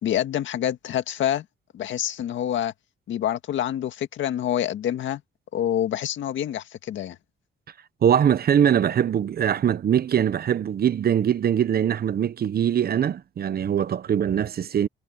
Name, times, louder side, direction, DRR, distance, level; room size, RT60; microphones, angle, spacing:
voice 1, 0.0-1.4 1.7-2.7 3.1-5.2 5.5-7.2, left 11 dB, 75° left, 1.9 m, -27 dB
voice 2, 8.0-14.9, right 9 dB, 50° right, 0.9 m, -22 dB
cardioid pair, 90°, 20 cm